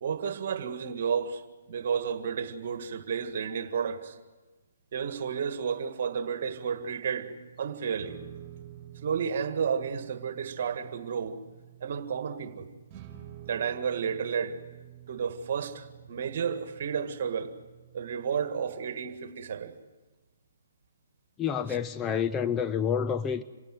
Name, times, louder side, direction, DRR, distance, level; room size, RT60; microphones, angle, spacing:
voice 1, 0.0-1.4 1.7-4.2 4.9-7.3 7.6-8.2 9.0-11.4 11.8-12.7 13.5-14.6 15.1-17.5 17.9-19.7, right 7 dB, 50° right, 1.8 m, -32 dB
sound 1, 6.3-18.9, right 12 dB, 25° right, 4.1 m, -50 dB
voice 2, 21.4-23.4, left 7 dB, 15° left, 0.7 m, -28 dB
27.0 x 17.0 x 7.8 m
figure-of-eight pair, 135°, 0 cm